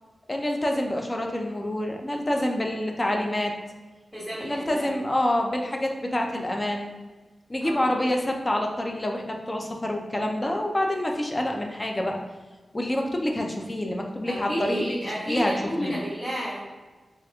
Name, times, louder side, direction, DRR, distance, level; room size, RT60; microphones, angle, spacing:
voice 1, 0.3-3.5 4.4-6.9 7.5-12.2 12.7-14.9 15.3-15.5 15.8-15.9, left 1 dB, 25° left, 2 dB, 0.4 m, -27 dB
voice 2, 4.1-5.0 7.6-7.9 14.3-16.6, equal, 5° left, -11 dB, 1.2 m, -31 dB
2.9 x 2.4 x 3.4 m, 1.3 s
wide cardioid pair, 120°, 0 cm